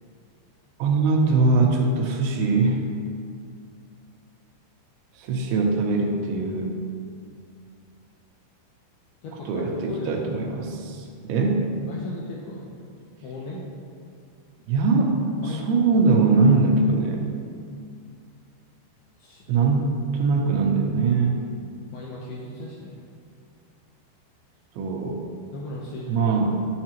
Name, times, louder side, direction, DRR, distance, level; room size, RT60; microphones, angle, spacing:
voice 1, 0.8-2.8 5.2-6.8 9.5-11.7 14.7-17.3 19.5-21.4 24.8-25.2 26.1-26.7, right 3 dB, 80° right, 1 dB, 3.2 m, -22 dB
voice 2, 9.2-10.2 11.9-12.7 13.2-13.6 15.4-15.7 19.2-19.5 20.1-20.3 21.9-23.0 25.5-26.1, left 2 dB, 75° left, -4 dB, 2.3 m, -37 dB
9.8 x 9.5 x 2.9 m, 2.3 s
omnidirectional pair, 5.4 m